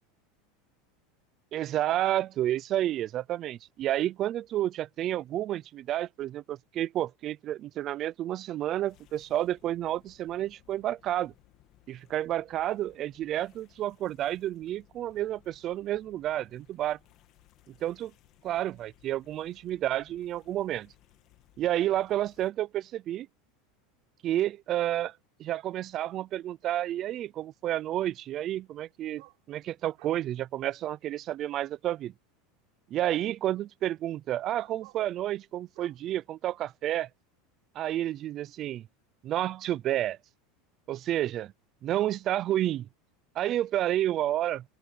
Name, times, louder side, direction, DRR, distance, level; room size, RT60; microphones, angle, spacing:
voice 1, 1.5-11.3 11.9-17.0 17.8-18.1 18.4-20.9 21.6-23.3 24.2-25.1 25.4-29.2 29.5-32.1 32.9-37.1 37.8-38.9 39.2-40.2 40.9-41.5 41.8-42.9 43.4-44.6, right 13 dB, 30° right, 0.4 m, -30 dB
sound 1, 8.9-22.5, left 15 dB, 35° left, 2.5 m, -62 dB
sound 2, 29.1-29.4 30.0-30.2 31.4-31.5 33.3-33.4 34.5-35.1 35.7-36.0 38.1-38.2, right 26 dB, 55° right, 8.0 m, -55 dB
open air
supercardioid pair, 175°, 0 cm